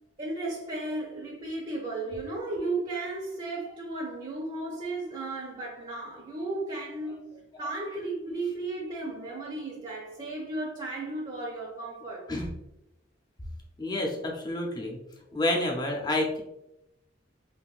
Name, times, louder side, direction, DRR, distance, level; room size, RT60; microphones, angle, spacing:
voice 1, 0.2-7.2 7.6-12.3, right 2 dB, 30° right, 0.6 m, -34 dB
voice 2, 13.8-15.0 15.3-16.4, left 1 dB, 20° left, 0.5 m, -29 dB
3.4 x 2.6 x 2.4 m
head